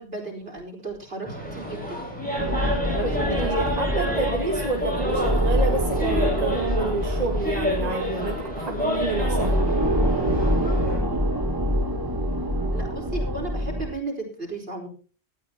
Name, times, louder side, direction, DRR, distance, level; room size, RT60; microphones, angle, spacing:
voice 1, 0.0-2.1 2.8-4.3 12.4-14.9, right 2 dB, 65° right, 0 dB, 5.1 m, -35 dB
sound 1, 1.2-11.0, left 1 dB, 10° left, 7.7 m, -30 dB
sound 2, 2.4-13.9, equal, 20° right, 1.4 m, -25 dB
voice 2, 3.3-9.6, right 2 dB, 35° right, 2 dB, 1.9 m, -29 dB
18.0 x 12.5 x 2.9 m, 0.38 s
omnidirectional pair, 1.1 m